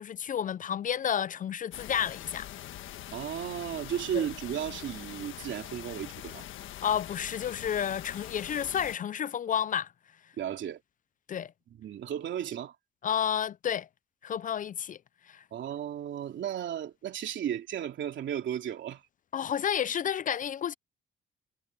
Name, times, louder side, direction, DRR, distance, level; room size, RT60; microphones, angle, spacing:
voice 1, 0.0-2.5 4.1-4.2 6.8-9.9 11.3-11.5 13.0-13.9 14.2-15.0 15.3-15.4 19.3-20.7, left 9 dB, 40° left, 0.4 m, -31 dB
sound 1, 1.7-9.0, left 12 dB, 80° left, 1.4 m, -43 dB
voice 2, 3.1-6.5 10.4-10.8 11.8-12.7 15.5-19.0, right 10 dB, 70° right, 3.1 m, -34 dB
cardioid pair, 90°, 20 cm